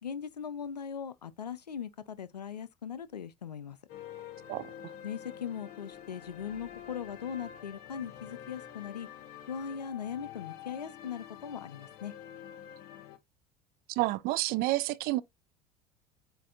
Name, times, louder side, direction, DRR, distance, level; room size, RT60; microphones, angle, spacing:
voice 1, 0.0-3.8 5.0-9.1 9.5-12.1, left 7 dB, 90° left, 0.4 m, -39 dB
sound 1, 3.9-13.2, left 10 dB, 50° left, 0.9 m, -47 dB
voice 2, 13.9-15.2, right 18 dB, 50° right, 0.4 m, -29 dB
7.4 x 2.6 x 2.4 m
figure-of-eight pair, 70°, 20 cm